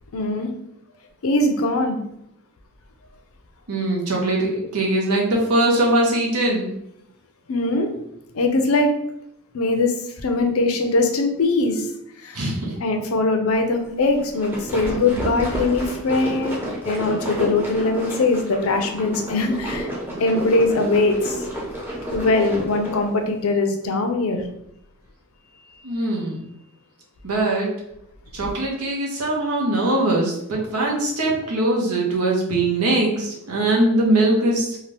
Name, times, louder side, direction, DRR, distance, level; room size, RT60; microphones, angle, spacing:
voice 1, 0.1-0.5 1.2-2.0 7.5-7.9 8.3-8.9 9.5-11.9 12.2-12.4 12.8-16.6 16.8-19.9 20.2-21.4 22.1-24.4, left 2 dB, 75° left, 5 dB, 0.5 m, -21 dB
voice 2, 3.7-6.7 12.3-12.8 25.8-26.4 27.2-27.7 28.3-34.8, right 1 dB, 85° right, -1 dB, 0.9 m, -21 dB
sound 1, 14.2-23.1, equal, 10° right, 0.6 m, -30 dB
2.8 x 2.4 x 3.3 m, 0.78 s
head